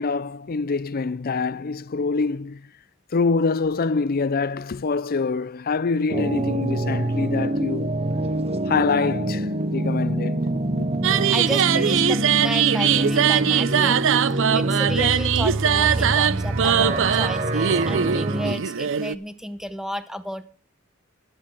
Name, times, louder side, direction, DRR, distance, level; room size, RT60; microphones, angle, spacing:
voice 1, 0.0-2.7 3.1-7.9 8.7-10.9, left 4 dB, 45° left, 0.5 m, -25 dB
sound 1, 6.1-18.6, right 1 dB, 30° right, 0.7 m, -25 dB
sound 2, 11.0-19.2, right 8 dB, 65° right, 0.6 m, -21 dB
voice 2, 11.3-20.5, equal, ahead, 0.9 m, -33 dB
14.0 x 10.5 x 4.5 m
head